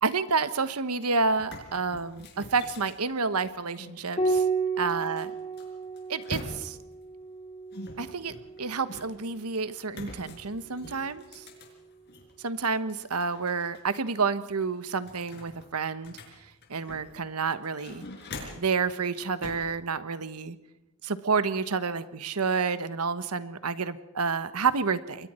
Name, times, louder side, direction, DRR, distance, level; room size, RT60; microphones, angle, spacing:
voice 1, 0.0-4.4 4.8-5.3 6.1-6.8 8.0-11.5 12.4-16.2 16.7-18.0 18.6-20.6 21.0-25.3, right 4 dB, 90° right, 13 dB, 1.2 m, -29 dB
sound 1, 0.8-0.9 1.3-4.0 4.9-6.9 7.7-9.3 9.9-12.3 12.7-13.8 14.1-14.2 14.6-17.2 17.6-18.8 19.4-19.7, left 1 dB, 50° left, 5.1 m, -44 dB
Piano, 4.2-9.0 10.7-11.5, right 3 dB, 25° left, 3.4 m, -32 dB
28.0 x 22.0 x 4.4 m, 0.91 s
head